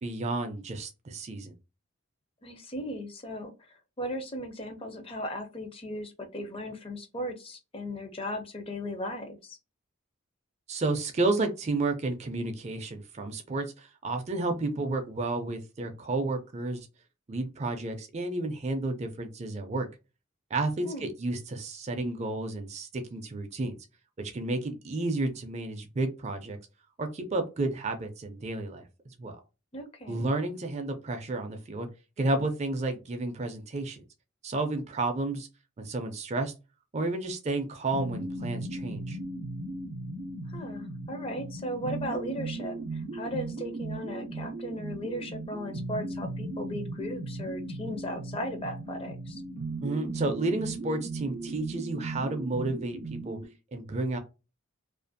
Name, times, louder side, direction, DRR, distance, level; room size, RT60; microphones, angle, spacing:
voice 1, 0.0-1.6 10.7-16.9 17.3-19.9 20.5-23.8 24.2-26.6 27.0-28.8 29.2-29.4 30.1-31.9 32.2-34.0 34.4-35.5 35.8-36.5 36.9-39.2 49.8-53.4 53.7-54.2, right 2 dB, 30° right, 6 dB, 0.4 m, -31 dB
voice 2, 2.4-9.6 20.8-21.1 29.7-30.3 40.5-49.4, equal, 25° left, 6 dB, 0.4 m, -37 dB
sound 1, 37.9-53.4, right 2 dB, 80° right, 0.5 m, -37 dB
2.5 x 2.4 x 2.6 m, 0.29 s
head